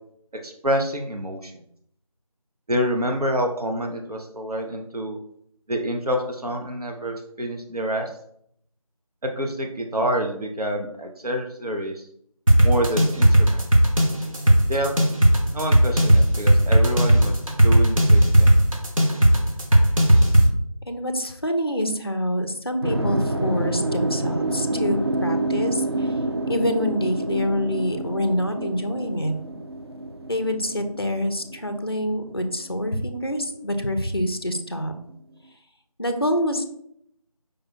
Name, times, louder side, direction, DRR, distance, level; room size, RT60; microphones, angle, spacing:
voice 1, 0.4-1.5 2.7-5.2 5.7-8.1 9.2-12.0 12.6-13.6 14.7-14.9 15.5-17.3 17.6-18.5, equal, 90° right, 3 dB, 0.7 m, -27 dB
sound 1, 12.5-20.5, right 1 dB, 65° right, 1.1 m, -16 dB
voice 2, 20.9-26.1 26.5-29.3 30.2-34.9 36.0-36.7, equal, 40° left, 7 dB, 0.4 m, -26 dB
sound 2, 22.8-33.0, right 1 dB, 45° right, 0.4 m, -28 dB
5.0 x 2.2 x 4.2 m, 0.70 s
figure-of-eight pair, 175°, 19 cm